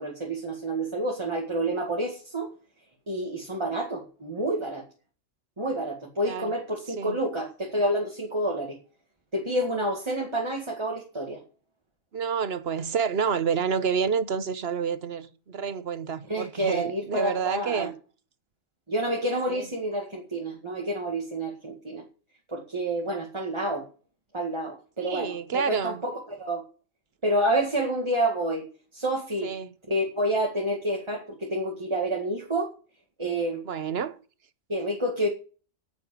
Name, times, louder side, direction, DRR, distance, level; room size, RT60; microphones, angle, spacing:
voice 1, 0.0-2.5 3.1-4.8 5.6-8.8 9.3-11.4 16.3-17.9 18.9-22.0 22.5-23.9 24.3-26.6 27.2-28.6 28.9-29.5 29.9-32.7 33.2-33.6 34.7-35.3, right 1 dB, 20° right, 2.0 m, -28 dB
voice 2, 6.2-6.5 7.0-7.2 12.1-17.9 19.5-19.7 25.0-26.0 29.4-29.7 33.6-34.2, right 6 dB, 55° right, 1.1 m, -29 dB
9.7 x 8.5 x 8.3 m
omnidirectional pair, 1.3 m